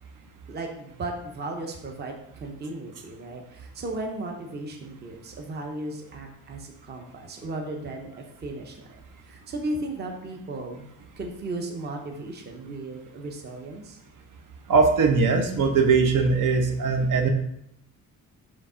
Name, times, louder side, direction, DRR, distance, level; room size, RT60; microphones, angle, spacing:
voice 1, 0.5-8.1 8.4-10.9 11.2-14.0, right 2 dB, 30° right, 3 dB, 0.7 m, -35 dB
voice 2, 14.7-17.3, right 4 dB, 65° right, 4 dB, 0.9 m, -20 dB
5.0 x 3.6 x 5.5 m, 0.76 s
cardioid pair, 165°, 34 cm